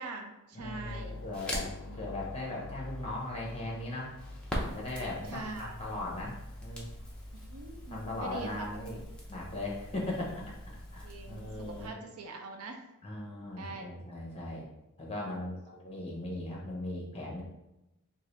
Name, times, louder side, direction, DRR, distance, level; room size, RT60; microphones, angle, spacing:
voice 1, 0.0-1.1 1.9-2.0 5.3-5.8 7.3-8.7 11.0-12.8 13.6-14.0 15.1-15.6, right 3 dB, 70° right, 4 dB, 0.5 m, -43 dB
voice 2, 0.5-4.1 4.7-6.8 7.9-9.0 9.3-10.5 10.9-11.9 13.0-14.7 15.0-17.4, left 2 dB, 25° left, -3 dB, 0.9 m, -38 dB
sound 1, 0.6-7.0, left 3 dB, 60° left, 0.3 m, -49 dB
Crackle, 0.9-11.9, equal, 5° left, 0.6 m, -43 dB
3.7 x 2.6 x 3.2 m, 0.92 s
head